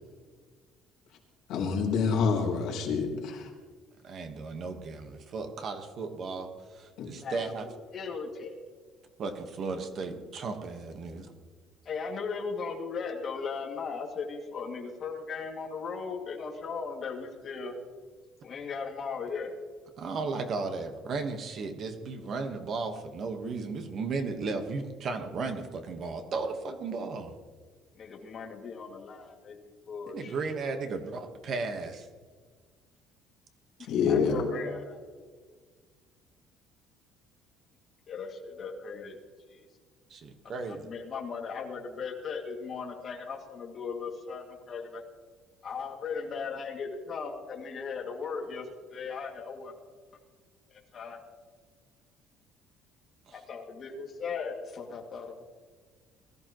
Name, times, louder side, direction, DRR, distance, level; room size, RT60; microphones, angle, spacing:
voice 1, 1.5-3.5 7.0-7.1 33.9-34.4, left 5 dB, 60° left, 0 dB, 3.6 m, -27 dB
voice 2, 4.0-7.7 9.2-11.3 20.0-27.4 30.1-32.1 40.1-40.9 53.3-53.4, right 4 dB, 40° right, 6 dB, 1.3 m, -35 dB
voice 3, 7.2-8.6 11.9-17.8 18.4-19.5 28.0-30.3 33.8-35.0 38.1-39.2 39.5-39.7 40.7-45.0 45.6-49.7 50.7-51.2 53.3-55.5, left 5 dB, 30° left, 0 dB, 2.2 m, -37 dB
21.0 x 14.0 x 3.0 m, 1.5 s
cardioid pair, 170°, 0 cm